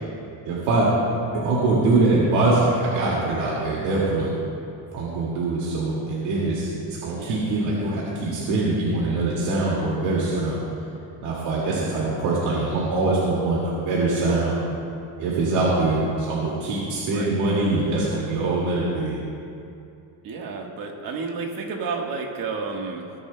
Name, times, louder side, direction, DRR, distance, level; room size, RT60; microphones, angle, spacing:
voice 1, 0.5-0.9 1.3-4.3 4.9-10.6 11.2-14.5 15.2-19.2, right 2 dB, 85° right, -6 dB, 2.2 m, -23 dB
voice 2, 7.1-7.5 17.0-17.3 20.2-23.1, right 4 dB, 55° right, 2 dB, 1.4 m, -31 dB
18.0 x 10.5 x 2.2 m, 2.6 s
cardioid pair, 160°, 42 cm